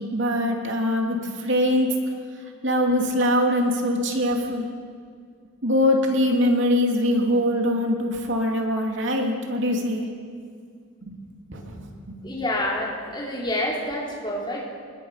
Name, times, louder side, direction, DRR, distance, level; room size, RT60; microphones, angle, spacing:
voice 1, 0.0-2.0 2.6-4.7 5.6-10.1 11.0-11.1 11.5-11.7 12.1-12.2, left 1 dB, 60° right, 1 dB, 3.0 m, -23 dB
voice 2, 12.2-14.6, left 1 dB, 20° left, -3 dB, 4.3 m, -28 dB
27.0 x 20.5 x 5.9 m, 2.1 s
head